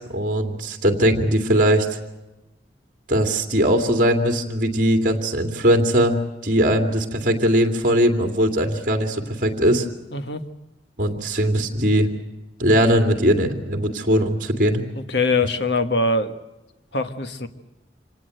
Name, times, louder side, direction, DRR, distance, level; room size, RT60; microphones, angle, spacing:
voice 1, 0.0-2.0 3.1-9.9 11.0-12.1 12.6-14.8, equal, 45° right, 4 dB, 2.5 m, -20 dB
voice 2, 10.1-10.4 14.9-16.4 16.9-17.5, left 2 dB, 70° left, 8 dB, 1.6 m, -22 dB
26.0 x 18.5 x 7.9 m, 0.99 s
head